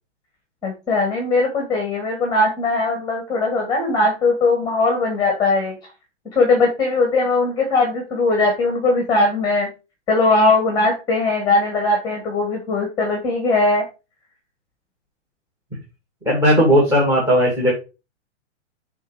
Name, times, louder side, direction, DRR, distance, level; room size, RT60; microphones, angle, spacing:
voice 1, 0.6-5.7 6.3-9.7 10.1-13.8, left 3 dB, 10° left, 3 dB, 1.5 m, -19 dB
voice 2, 16.3-17.7, equal, 10° right, -2 dB, 1.9 m, -16 dB
7.3 x 3.6 x 4.7 m, 0.29 s
hypercardioid pair, 160°, 36 cm